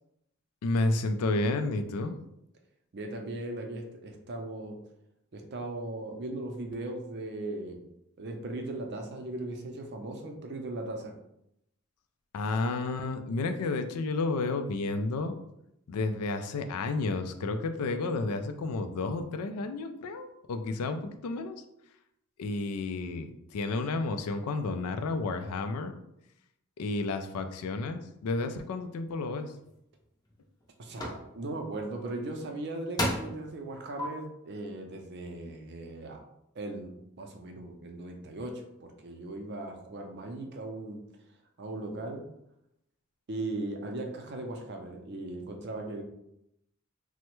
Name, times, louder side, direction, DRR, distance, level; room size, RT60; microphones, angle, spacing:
voice 1, 0.6-2.2 12.3-15.4 15.9-21.6 22.4-25.9 26.8-29.5, left 3 dB, 85° left, 8 dB, 0.4 m, -31 dB
voice 2, 2.9-4.8 5.3-7.8 8.2-11.1 30.8-36.2 36.5-36.9 37.2-41.0 41.6-42.2 43.3-46.0, right 2 dB, 50° right, 3 dB, 0.5 m, -38 dB
sound 1, 29.6-29.7 30.3-30.6 31.0-31.2 32.4-32.5 33.0-33.4 34.0-34.1, left 1 dB, 15° left, 0.5 m, -31 dB
3.3 x 2.1 x 3.0 m, 0.80 s
head